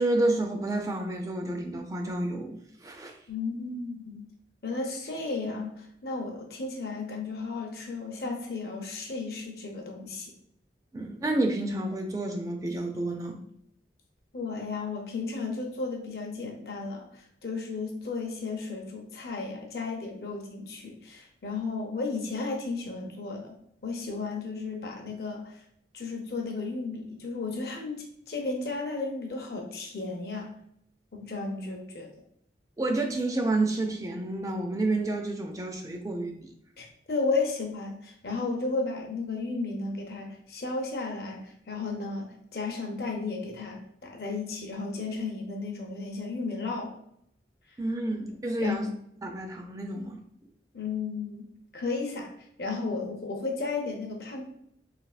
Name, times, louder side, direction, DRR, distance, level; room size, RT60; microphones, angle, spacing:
voice 1, 0.0-3.1 10.9-13.4 32.8-36.5 47.8-48.9 49.2-50.2, right 2 dB, 20° right, 3 dB, 0.3 m, -29 dB
voice 2, 3.3-4.3 4.6-10.3 14.3-23.5 23.8-25.6 25.9-30.5 31.1-32.1 36.8-46.9 48.6-48.8 50.7-51.5 51.7-52.3 52.6-54.4, left 3 dB, 55° left, 1 dB, 0.6 m, -34 dB
3.3 x 2.7 x 2.4 m, 0.71 s
head